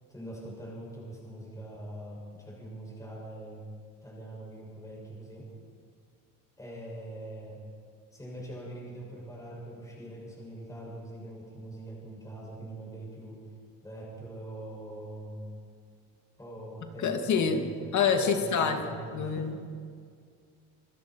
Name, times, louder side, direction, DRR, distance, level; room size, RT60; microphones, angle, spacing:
voice 1, 0.1-3.7 4.0-5.5 6.6-7.6 8.1-13.5 13.8-15.5 16.4-19.6, right 1 dB, 10° left, -3 dB, 7.3 m, -43 dB
voice 2, 17.0-17.7 17.9-18.8 19.1-19.7, left 6 dB, 45° left, 4 dB, 2.5 m, -26 dB
30.0 x 21.5 x 4.7 m, 2.1 s
cardioid pair, 125°, 39 cm